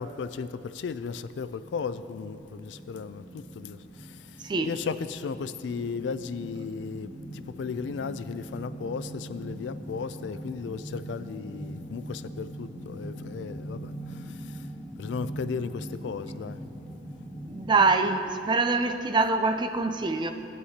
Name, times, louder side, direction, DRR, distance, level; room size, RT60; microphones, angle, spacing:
voice 1, 0.0-3.8 4.6-13.9 15.0-16.6, left 5 dB, 80° left, 0.3 m, -35 dB
sound 1, 1.3-17.7, right 1 dB, 10° left, 1.9 m, -42 dB
voice 2, 4.4-4.8 17.5-20.3, right 3 dB, 25° right, 0.4 m, -24 dB
15.5 x 9.5 x 2.8 m
head